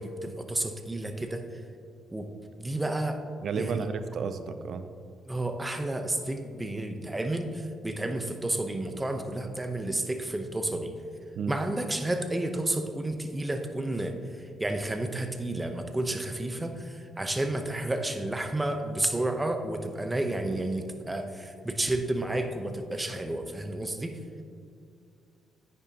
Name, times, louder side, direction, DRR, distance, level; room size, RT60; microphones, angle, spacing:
voice 1, 0.0-1.4 2.1-2.3 2.6-3.2 3.6-3.9 5.3-10.9 11.5-24.2, right 1 dB, 15° right, 6 dB, 0.8 m, -31 dB
voice 2, 3.4-4.9 11.4-11.5, right 5 dB, 60° right, 10 dB, 0.5 m, -32 dB
10.0 x 9.1 x 2.9 m, 2.3 s
cardioid pair, 90°, 0 cm